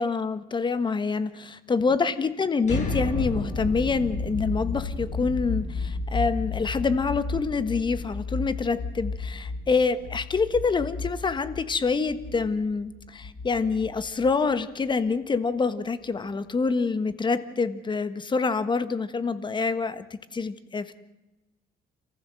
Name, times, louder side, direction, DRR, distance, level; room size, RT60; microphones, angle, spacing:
voice 1, 0.0-21.0, left 4 dB, 25° left, 12 dB, 1.4 m, -26 dB
sound 1, 2.6-14.5, left 3 dB, 45° left, 6.6 m, -32 dB
28.0 x 15.0 x 7.7 m, 1.0 s
cardioid pair, 110°, 17 cm